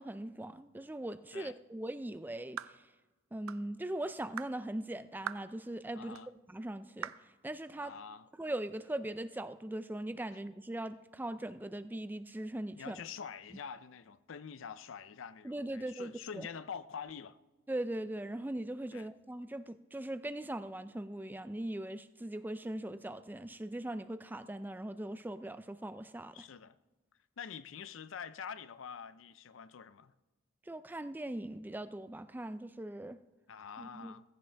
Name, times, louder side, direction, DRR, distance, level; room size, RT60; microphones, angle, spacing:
voice 1, 0.0-2.8 3.3-6.2 6.5-7.1 7.4-8.0 8.4-13.0 15.4-16.5 17.7-26.5 30.7-33.2 33.8-34.2, right 1 dB, 10° right, 0.4 m, -40 dB
Slow Clap Alone, 2.6-2.8 3.5-3.7 4.4-4.6 5.3-5.5 6.1-6.3 7.0-7.3, right 9 dB, 90° right, 0.4 m, -41 dB
voice 2, 6.0-6.3 7.8-8.3 12.8-17.4 18.9-19.1 26.3-26.8 27.4-30.1 33.5-34.2, left 7 dB, 70° left, 0.5 m, -46 dB
17.0 x 15.5 x 3.4 m
head